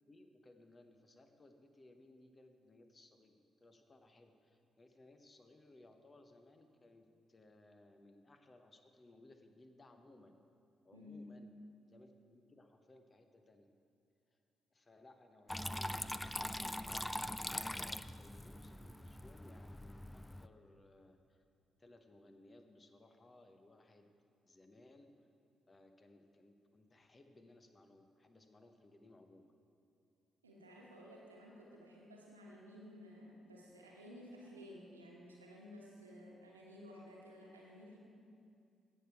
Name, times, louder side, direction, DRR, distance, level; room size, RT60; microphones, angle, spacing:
voice 1, 0.0-10.4 10.8-11.5 11.9-13.7 14.3-14.4 14.7-21.4 21.8-24.1 24.5-25.1 25.7-29.5, left 2 dB, 30° left, 6 dB, 0.9 m, -62 dB
voice 2, 10.9-11.4 30.4-38.0, left 1 dB, 85° right, -3 dB, 1.3 m, -54 dB
Water tap faucet / Trickle dribble, 15.5-20.5, left 1 dB, 10° left, 0.3 m, -42 dB
16.0 x 6.6 x 4.5 m, 2.4 s
figure-of-eight pair, 40°, 0 cm